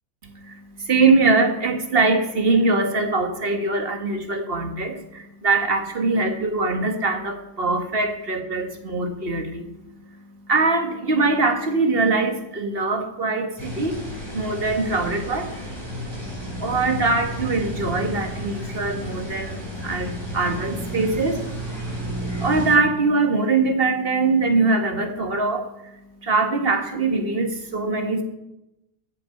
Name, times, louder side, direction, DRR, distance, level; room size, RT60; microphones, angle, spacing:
voice 1, 0.2-9.7 10.5-14.0 14.3-15.6 16.6-21.9 22.3-25.9 26.2-28.2, right 3 dB, 35° right, 6 dB, 1.8 m, -22 dB
sound 1, 13.6-22.8, equal, 15° right, 3.6 m, -32 dB
14.0 x 7.8 x 8.3 m, 0.88 s
omnidirectional pair, 1.9 m